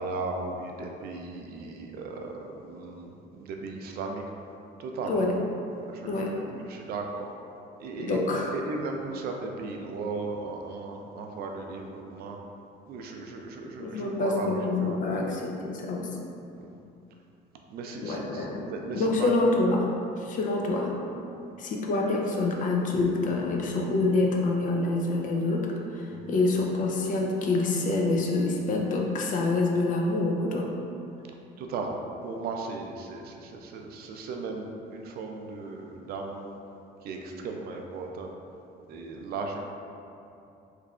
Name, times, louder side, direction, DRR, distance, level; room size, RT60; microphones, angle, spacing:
voice 1, 0.0-4.2 4.8-5.3 5.7-7.3 7.8-12.4 12.9-15.3 16.5-16.8 17.7-19.3 26.1-26.3 31.6-36.6 37.0-38.3 38.9-39.6, right 3 dB, 65° right, 2 dB, 0.4 m, -36 dB
voice 2, 8.0-8.5 13.6-16.1 18.0-18.6 18.9-19.9 20.2-21.0 21.6-30.7, left 2 dB, 50° left, 0 dB, 0.5 m, -26 dB
3.6 x 3.1 x 2.4 m, 2.7 s
cardioid pair, 110°, 17 cm